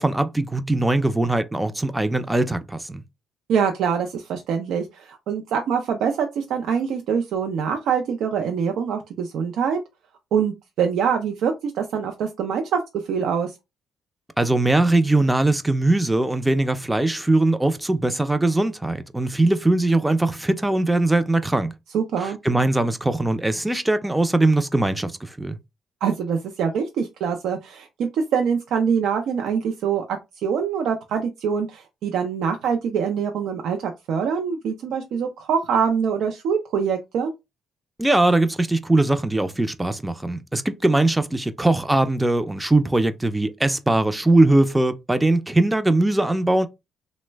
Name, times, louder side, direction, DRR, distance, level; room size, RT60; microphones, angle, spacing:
voice 1, 0.0-3.0 14.4-21.7 22.2-25.6 38.0-46.7, right 2 dB, 10° right, 0.4 m, -21 dB
voice 2, 3.5-9.8 10.3-13.5 21.9-22.4 26.0-37.3, right 7 dB, 80° right, 0.4 m, -24 dB
3.1 x 2.0 x 3.2 m
cardioid pair, 90°, 0 cm